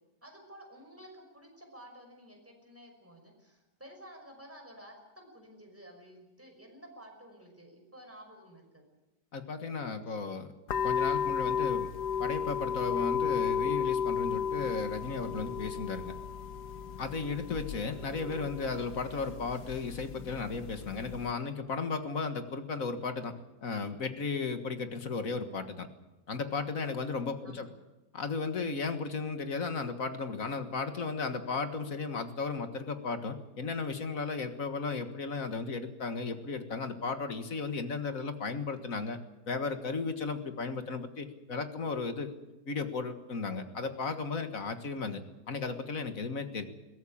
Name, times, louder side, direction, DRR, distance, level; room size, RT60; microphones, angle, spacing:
voice 1, 0.2-8.8 27.4-27.7, equal, 10° right, 3 dB, 5.6 m, -52 dB
voice 2, 9.3-10.5 10.8-11.9 12.2-16.1 17.0-25.9 26.3-27.7 28.1-39.2 39.5-42.3 42.7-46.6, left 4 dB, 55° left, 8 dB, 2.0 m, -35 dB
sound 1, 10.7-21.3, left 7 dB, 75° left, 1.5 m, -33 dB
22.0 x 16.5 x 8.6 m, 1.1 s
omnidirectional pair, 1.8 m